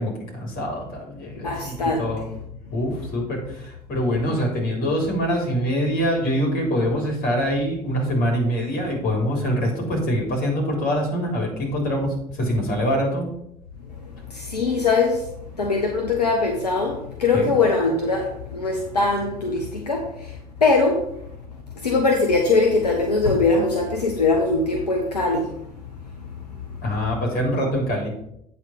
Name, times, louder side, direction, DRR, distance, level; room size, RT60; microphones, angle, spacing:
voice 1, 0.0-2.2 2.7-13.3 17.3-17.5 26.8-28.1, equal, 45° left, 0 dB, 3.7 m, -24 dB
voice 2, 1.4-2.1 14.3-15.2 15.6-20.1 20.6-21.0 21.8-25.5, left 3 dB, 85° left, 2 dB, 0.9 m, -21 dB
8.7 x 4.3 x 6.6 m, 0.75 s
figure-of-eight pair, 60°, 20 cm